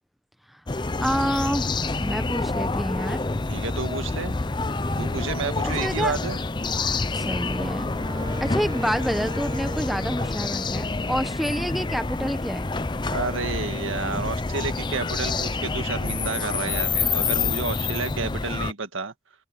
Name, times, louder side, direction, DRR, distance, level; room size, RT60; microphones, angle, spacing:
sound 1, 0.7-18.7, left 3 dB, 25° left, 0.5 m, -27 dB
voice 1, 1.0-1.7 2.0-3.2 5.6-6.2 7.1-7.9 8.4-12.7, equal, ahead, 1.1 m, -28 dB
voice 2, 3.5-4.4 5.0-6.4 13.1-19.1, right 4 dB, 90° right, 1.9 m, -30 dB
Wind instrument woodwind instrument, 7.5-11.8, equal, 20° right, 3.8 m, -40 dB
head